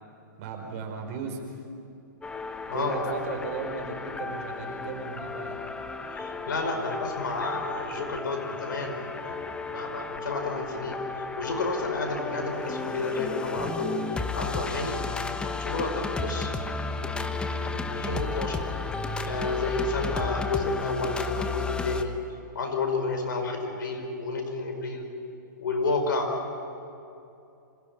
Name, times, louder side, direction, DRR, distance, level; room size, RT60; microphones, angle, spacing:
voice 1, 0.4-1.5 2.7-5.6, right 5 dB, 45° right, 3 dB, 5.0 m, -36 dB
sound 1, 2.2-22.0, left 4 dB, 10° left, 1.1 m, -33 dB
voice 2, 2.7-3.1 6.1-11.0 11.4-15.0 15.4-16.5 16.9-18.6 19.2-22.1 22.5-25.1 25.6-26.3, left 3 dB, 75° left, 4 dB, 5.3 m, -31 dB
26.5 x 16.5 x 9.6 m, 2.7 s
hypercardioid pair, 130°, 11 cm